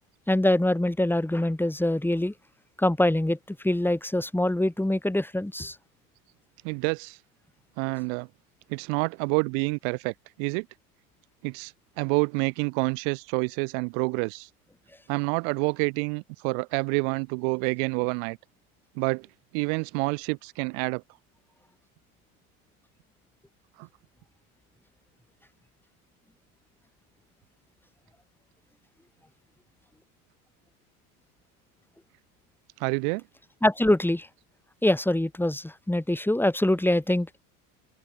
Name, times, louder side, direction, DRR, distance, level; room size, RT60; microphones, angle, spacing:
voice 1, 0.3-2.3 2.8-5.8 33.6-34.3 34.8-37.3, left 1 dB, 5° left, 6.4 m, -24 dB
voice 2, 6.6-7.2 7.8-8.3 8.7-10.7 11.4-14.5 15.1-18.4 19.0-19.3 19.5-21.0 23.8-23.9 32.8-33.2, right 40 dB or more, 65° right, 3.8 m, -28 dB
hypercardioid pair, 100°, 43 cm